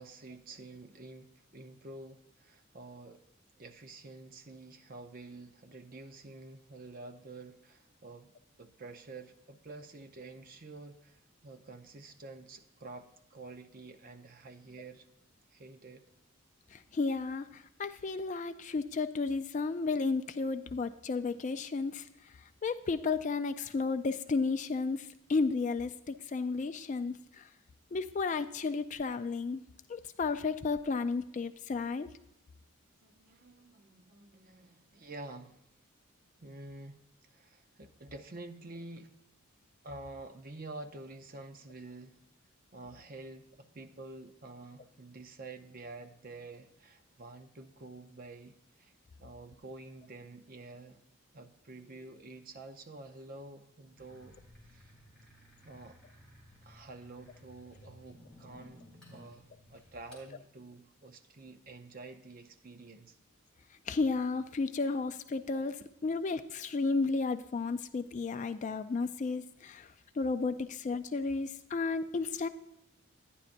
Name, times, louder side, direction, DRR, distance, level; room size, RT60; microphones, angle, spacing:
voice 1, 0.0-3.2 3.6-8.3 8.6-15.1 15.5-16.0 33.0-35.7 36.4-39.1 39.8-42.2 42.7-48.9 49.2-51.0 51.3-54.4 54.7-54.9 55.6-56.0 56.6-63.2, right 2 dB, 40° right, 7 dB, 0.6 m, -49 dB
voice 2, 16.7-22.1 22.6-27.5 27.9-29.6 29.9-32.1 63.9-72.5, left 4 dB, 35° left, 10 dB, 0.3 m, -33 dB
sound 1, 54.0-60.3, equal, 5° left, 3.4 m, -57 dB
12.0 x 9.9 x 2.5 m, 0.87 s
head